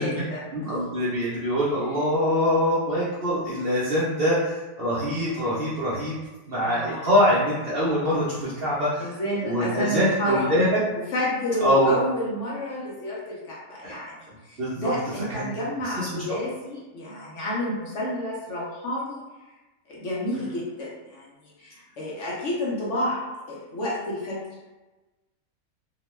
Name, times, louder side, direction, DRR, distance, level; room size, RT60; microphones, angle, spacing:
voice 1, 0.0-0.7 6.6-7.1 9.0-10.7 11.1-19.2 19.9-24.4, left 1 dB, 60° left, -5 dB, 0.9 m, -30 dB
voice 2, 0.5-6.1 6.5-10.8 11.6-11.9 13.8-13.9 14.6-15.5 15.8-16.2, equal, 55° right, -9 dB, 0.7 m, -24 dB
2.8 x 2.1 x 3.0 m, 1.1 s
omnidirectional pair, 1.6 m